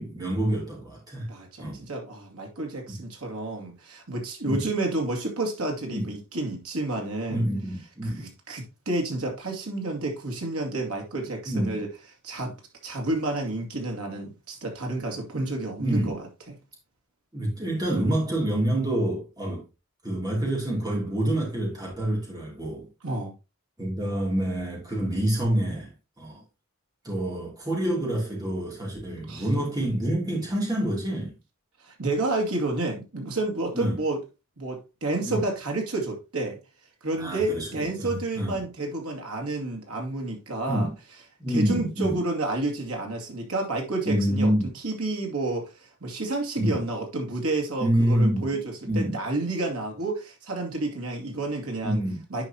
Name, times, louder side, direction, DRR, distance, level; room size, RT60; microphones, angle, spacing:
voice 1, 0.0-1.3 1.6-1.8 2.9-3.0 4.5-4.7 5.9-6.1 7.3-8.2 11.5-11.8 15.8-16.1 17.3-19.6 20.0-22.9 23.8-25.9 26.2-26.4 27.0-31.3 33.7-34.0 35.2-35.4 37.2-38.1 38.4-38.6 40.7-40.9 41.4-42.2 44.1-44.7 46.6-46.8 47.8-48.5 48.9-49.1 51.8-52.2, right 1 dB, 15° right, 2.9 m, -27 dB
voice 2, 1.3-7.5 8.0-11.9 12.2-12.5 12.8-16.5 23.0-23.3 29.3-29.5 31.8-34.2 34.6-36.6 37.0-40.9 41.5-52.0 52.3-52.5, right 2 dB, 85° right, 2.3 m, -30 dB
10.0 x 5.1 x 2.9 m
head